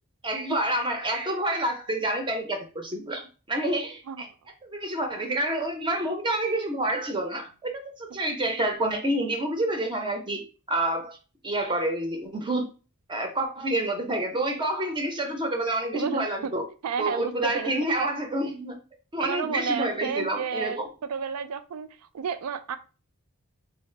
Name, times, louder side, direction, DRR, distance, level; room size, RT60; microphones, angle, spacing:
voice 1, 0.2-4.3 4.6-11.2 11.4-12.7 13.1-16.6 17.0-18.8 19.1-20.9, right 1 dB, 20° right, 0.6 m, -28 dB
voice 2, 15.9-16.5 16.8-17.7 18.0-18.1 19.2-20.8 21.1-22.8, right 6 dB, 85° right, 0.3 m, -31 dB
3.7 x 2.0 x 3.2 m
head